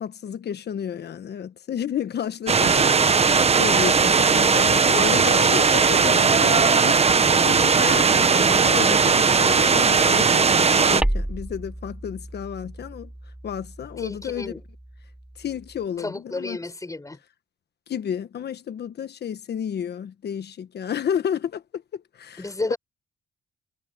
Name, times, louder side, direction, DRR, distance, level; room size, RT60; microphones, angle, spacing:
voice 1, 0.0-3.0 3.3-7.0 7.4-13.1 13.4-14.5 15.4-16.6 17.9-22.7, left 8 dB, 55° left, 1.3 m, -31 dB
sound 1, 2.5-11.0, right 5 dB, 30° right, 1.2 m, -18 dB
sound 2, 11.0-15.9, right 1 dB, 5° right, 1.5 m, -33 dB
voice 2, 14.0-14.6 16.0-17.2 22.4-22.8, left 2 dB, 15° left, 5.7 m, -31 dB
cardioid pair, 90°, 20 cm